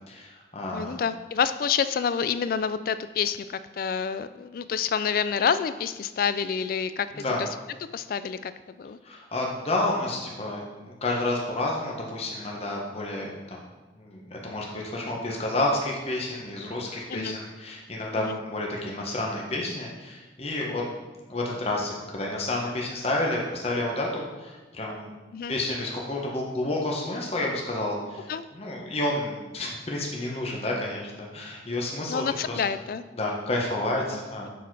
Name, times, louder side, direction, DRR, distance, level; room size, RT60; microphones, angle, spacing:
voice 1, 0.1-0.9 7.1-7.5 9.0-13.7 14.0-20.8 21.3-25.1 25.5-28.3 28.5-32.6 33.2-34.5, left 2 dB, 35° left, -2 dB, 1.0 m, -30 dB
voice 2, 0.7-7.5 7.9-8.5 8.8-9.0 17.1-17.4 18.2-18.4 25.3-25.5 28.3-28.4 32.1-33.0 34.1-34.2, left 7 dB, 55° left, 13 dB, 0.3 m, -28 dB
6.9 x 4.2 x 4.6 m, 1.2 s
head